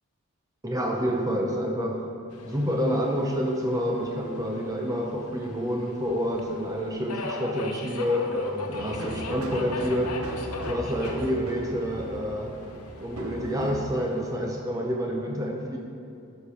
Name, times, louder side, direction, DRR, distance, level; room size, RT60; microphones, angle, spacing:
voice 1, 0.6-2.1 2.5-10.2 10.6-12.6 13.0-15.8, equal, 15° right, 1 dB, 0.5 m, -28 dB
Subway metro underground, 2.3-14.3, left 3 dB, 90° left, 0.8 m, -40 dB
sound 1, 8.7-13.9, right 1 dB, 75° right, 0.9 m, -38 dB
13.0 x 4.4 x 4.9 m, 2.7 s
head